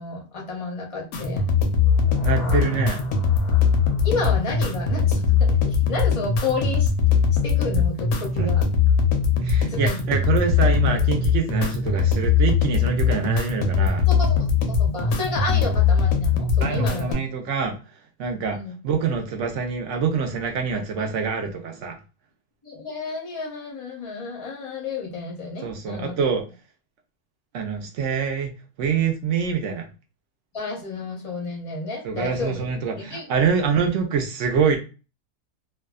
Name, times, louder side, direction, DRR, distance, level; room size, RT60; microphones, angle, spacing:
voice 1, 0.0-1.4 4.0-6.9 7.4-8.6 9.7-10.0 14.1-14.5 14.8-17.2 18.5-18.7 22.6-26.2 30.5-32.6 33.0-33.2, left 4 dB, 40° left, -1 dB, 0.5 m, -31 dB
sound 1, 1.1-17.1, left 6 dB, 65° left, 0.8 m, -21 dB
sound 2, 1.7-5.7, left 3 dB, 20° right, 1.0 m, -41 dB
voice 2, 2.2-3.0 8.4-8.5 9.4-14.0 15.5-15.6 16.6-17.7 18.2-18.6 18.8-22.0 25.6-26.4 27.5-28.5 28.8-29.8 32.0-34.8, right 6 dB, 70° right, 3 dB, 0.7 m, -25 dB
2.6 x 2.2 x 2.2 m, 0.32 s
omnidirectional pair, 1.7 m